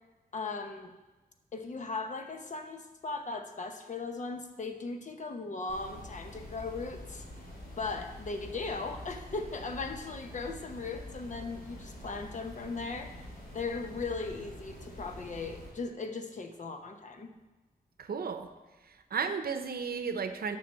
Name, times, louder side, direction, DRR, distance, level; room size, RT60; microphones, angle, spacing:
voice 1, 0.3-0.9 1.5-7.2 7.8-13.1 13.5-17.3, left 3 dB, 50° left, 5 dB, 1.0 m, -38 dB
sound 1, 5.7-15.7, left 1 dB, 80° left, 3.2 m, -46 dB
voice 2, 18.0-18.5 18.9-20.6, right 5 dB, 75° right, 8 dB, 0.7 m, -34 dB
7.4 x 6.0 x 6.3 m, 1.1 s
wide cardioid pair, 130°, 16 cm